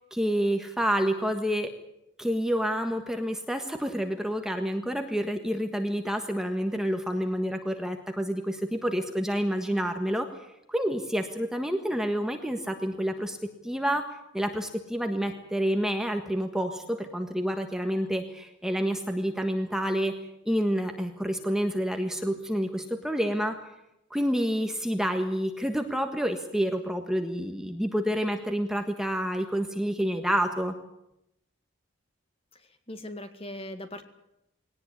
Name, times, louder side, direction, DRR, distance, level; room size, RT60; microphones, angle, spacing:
voice 1, 0.1-1.7 2.2-10.3 10.7-13.4 13.6-14.0 14.3-20.1 20.4-23.6 24.1-30.7, equal, 5° right, 5 dB, 1.5 m, -28 dB
voice 2, 32.5-34.0, left 1 dB, 30° left, 8 dB, 1.9 m, -40 dB
21.0 x 18.0 x 9.7 m, 0.83 s
head